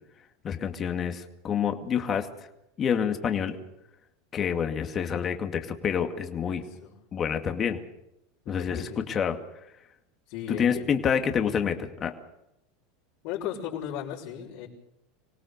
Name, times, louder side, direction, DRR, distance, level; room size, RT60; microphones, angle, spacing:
voice 1, 0.4-2.3 2.8-3.6 4.3-6.6 7.1-7.8 8.5-9.4 10.5-12.1, left 7 dB, 30° left, 5 dB, 2.2 m, -27 dB
voice 2, 6.5-6.9 8.4-9.1 10.3-10.9 13.2-14.7, left 9 dB, 60° left, -6 dB, 5.6 m, -36 dB
25.5 x 17.5 x 6.7 m, 0.86 s
supercardioid pair, 120°, 0 cm